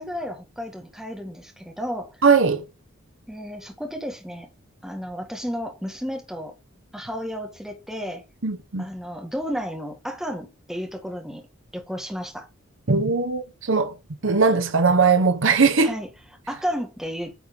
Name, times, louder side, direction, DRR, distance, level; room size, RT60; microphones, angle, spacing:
voice 1, 0.0-2.2 3.3-4.5 4.8-6.6 6.9-8.2 8.8-11.5 11.7-12.5 15.8-16.1 16.5-17.3, equal, ahead, 1.7 m, -32 dB
voice 2, 2.2-2.7 8.4-8.8 12.9-14.0 14.2-15.9, right 4 dB, 65° right, 0.9 m, -19 dB
9.3 x 3.9 x 5.1 m
head